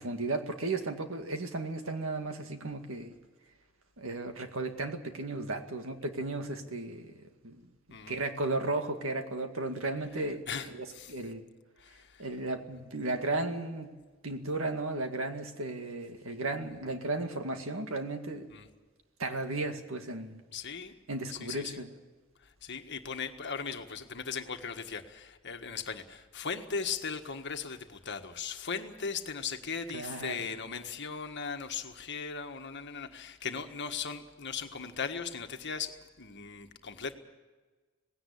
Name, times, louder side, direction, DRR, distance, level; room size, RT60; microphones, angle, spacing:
voice 1, 0.0-3.1 4.0-7.1 7.4-7.6 8.1-11.4 12.2-13.9 14.2-18.5 19.2-20.4 21.1-21.9 29.9-30.5, right 2 dB, 65° right, 6 dB, 2.1 m, -35 dB
voice 2, 10.5-11.1 11.8-12.3 18.5-18.7 20.5-20.9 21.4-21.8 22.6-37.1, left 6 dB, 55° left, 6 dB, 1.6 m, -38 dB
19.0 x 17.0 x 8.6 m, 1.3 s
head